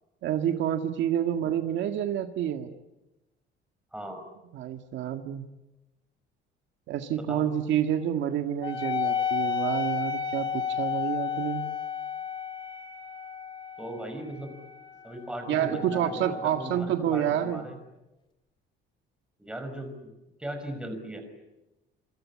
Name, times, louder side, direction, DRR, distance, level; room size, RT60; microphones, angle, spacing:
voice 1, 0.2-2.7 4.5-5.5 6.9-11.6 15.5-17.6, right 10 dB, 65° right, 6 dB, 1.9 m, -28 dB
voice 2, 3.9-4.2 7.2-7.5 13.8-14.5 15.0-17.8 19.4-20.1 20.4-21.2, right 1 dB, 5° right, 6 dB, 5.6 m, -38 dB
Wind instrument woodwind instrument, 8.6-17.6, left 7 dB, 25° left, 3.0 m, -33 dB
27.0 x 25.5 x 8.6 m, 0.98 s
cardioid pair, 160°, 20 cm